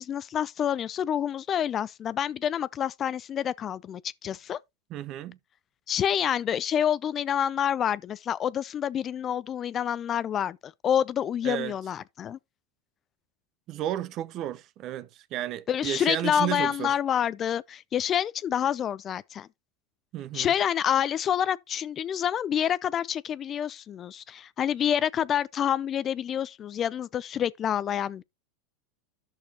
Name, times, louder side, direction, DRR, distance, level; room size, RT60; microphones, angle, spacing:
voice 1, 0.0-4.6 5.9-12.4 15.7-19.5 20.3-28.2, left 9 dB, 35° left, 0.4 m, -28 dB
voice 2, 4.9-5.4 11.4-11.7 13.7-17.0 20.1-20.5, right 12 dB, 45° right, 0.8 m, -32 dB
11.5 x 6.4 x 2.9 m
hypercardioid pair, 110°, 0 cm